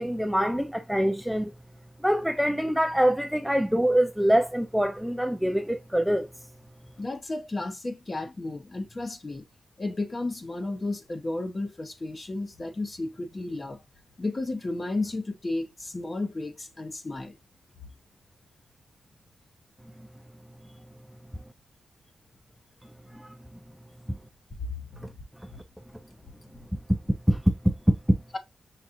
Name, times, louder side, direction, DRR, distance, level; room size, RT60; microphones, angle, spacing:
voice 1, 0.0-1.5 2.0-6.3 23.1-23.3 27.3-27.7 28.1-28.2, equal, ahead, 0.4 m, -24 dB
voice 2, 7.0-9.5 9.8-13.8 14.2-17.4 23.7-23.8 24.6-25.2 25.5-25.6, left 2 dB, 30° left, 0.8 m, -33 dB
5.8 x 2.4 x 2.5 m
wide cardioid pair, 115°, 0 cm